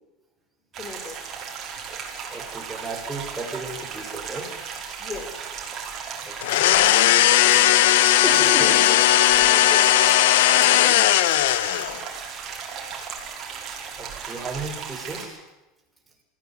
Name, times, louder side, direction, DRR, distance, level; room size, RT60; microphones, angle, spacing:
sound 1, 0.7-15.3, right 6 dB, 35° right, 5.2 m, -36 dB
voice 1, 0.8-1.5 5.0-5.3 8.6-10.2 10.5-11.2, left 4 dB, 25° left, 8 dB, 4.0 m, -37 dB
voice 2, 2.3-4.5 6.2-6.7 8.2-8.8 14.0-15.4, right 2 dB, 10° right, 0 dB, 5.9 m, -34 dB
sound 2, 6.4-12.0, left 14 dB, 80° left, 1.1 m, -17 dB
20.5 x 16.0 x 9.8 m, 1.0 s
supercardioid pair, 130°, 0 cm